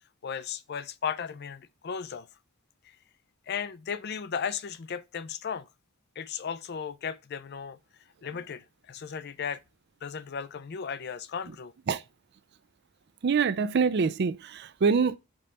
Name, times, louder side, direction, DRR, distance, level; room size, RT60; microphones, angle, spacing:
voice 1, 0.2-2.3 2.8-3.0 3.5-5.7 6.2-7.8 8.2-9.6 10.0-11.7, left 7 dB, 45° left, 0.4 m, -35 dB
voice 2, 13.2-15.2, right 5 dB, 50° right, 0.4 m, -25 dB
5.3 x 4.1 x 5.4 m
head